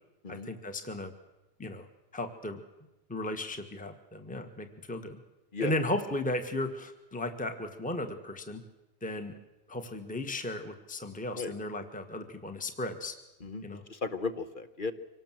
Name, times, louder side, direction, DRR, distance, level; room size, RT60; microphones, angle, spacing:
voice 1, 0.3-1.1 1.6-1.9 2.1-2.6 3.1-5.2 5.6-8.6 9.0-9.4 9.7-13.2 13.6-13.8, left 1 dB, 5° left, 6 dB, 1.5 m, -35 dB
voice 2, 13.4-14.9, left 4 dB, 35° left, 10 dB, 1.2 m, -35 dB
25.5 x 19.0 x 7.6 m, 0.99 s
omnidirectional pair, 1.7 m